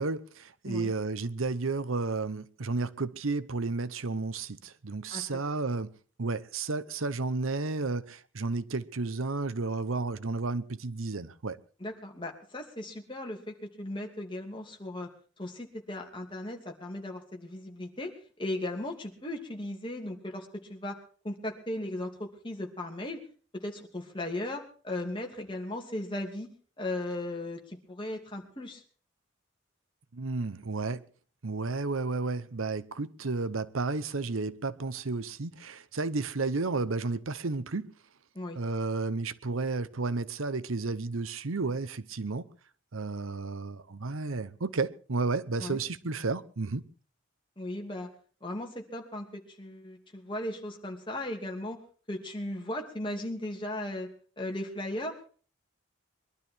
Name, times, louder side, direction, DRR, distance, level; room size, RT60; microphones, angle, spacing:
voice 1, 0.0-5.9 6.2-11.6 30.1-31.0 31.4-37.9 38.5-42.5 42.9-46.8, right 3 dB, 85° right, 0.9 m, -32 dB
voice 2, 11.8-15.1 15.4-21.0 21.2-23.2 23.5-26.5 26.8-28.8 38.3-38.6 45.6-45.8 47.6-48.1 48.4-51.8 52.1-54.1 54.4-55.3, left 1 dB, 25° left, 2.8 m, -37 dB
22.5 x 12.0 x 4.6 m
head